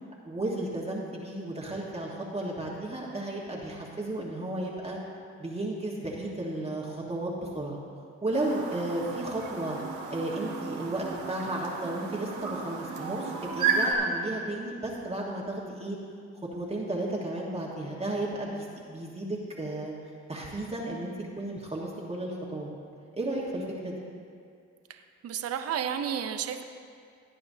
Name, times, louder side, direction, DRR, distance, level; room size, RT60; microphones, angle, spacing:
voice 1, 0.2-5.0 5.4-7.8 8.2-9.8 10.1-16.0 16.5-19.9 20.3-22.7 23.1-24.0, right 1 dB, 20° right, -4 dB, 1.5 m, -33 dB
Chirp tweet, 8.3-13.9, right 5 dB, 80° right, 1.6 m, -33 dB
voice 2, 25.2-26.6, right 8 dB, 55° right, 7 dB, 0.7 m, -31 dB
17.5 x 9.2 x 2.8 m, 2.3 s
cardioid pair, 90°, 30 cm